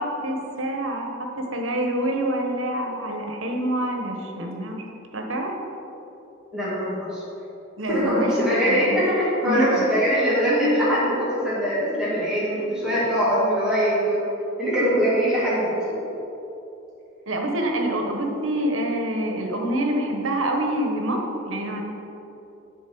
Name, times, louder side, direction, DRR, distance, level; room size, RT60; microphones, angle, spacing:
voice 1, 0.0-4.8 5.1-5.5 7.8-9.0 9.4-9.7 12.5-12.7 17.3-21.8, right 1 dB, 75° right, 2 dB, 1.2 m, -26 dB
voice 2, 6.5-7.2 7.9-14.2 14.6-16.0, equal, 5° right, -10 dB, 2.2 m, -22 dB
10.5 x 4.2 x 6.2 m, 2.9 s
head